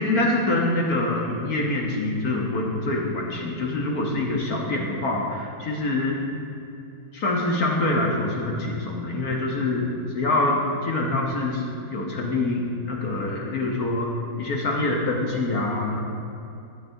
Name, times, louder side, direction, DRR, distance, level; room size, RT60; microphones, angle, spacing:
voice 1, 0.0-6.2 7.1-11.6 11.9-14.1 14.4-16.0, left 2 dB, 60° left, -1 dB, 1.2 m, -25 dB
13.0 x 7.7 x 2.6 m, 2.6 s
omnidirectional pair, 2.1 m